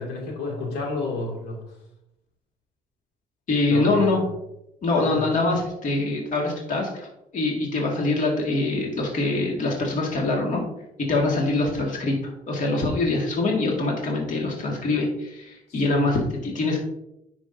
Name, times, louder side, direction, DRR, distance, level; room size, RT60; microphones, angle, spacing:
voice 1, 0.0-1.6 3.7-4.3 5.0-5.3 15.9-16.1, left 3 dB, 80° left, 0 dB, 2.2 m, -30 dB
voice 2, 3.5-4.2 4.8-7.1 7.3-10.6 11.0-16.8, left 2 dB, 50° left, -1 dB, 1.9 m, -24 dB
9.8 x 6.0 x 2.6 m, 0.82 s
cardioid pair, 110°, 17 cm